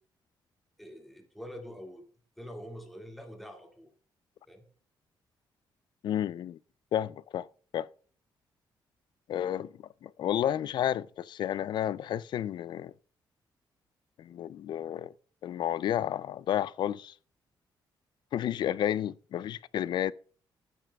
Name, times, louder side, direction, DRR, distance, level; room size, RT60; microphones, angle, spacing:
voice 1, 0.8-2.0 2.4-3.9 4.5-4.6, equal, ahead, 2.1 m, -45 dB
voice 2, 6.0-6.6 6.9-7.5 7.7-7.9 9.3-9.7 10.0-12.9 14.2-15.1 15.4-17.1 18.3-20.1, left 10 dB, 60° left, 0.3 m, -31 dB
15.5 x 9.1 x 2.3 m
cardioid pair, 140°, 8 cm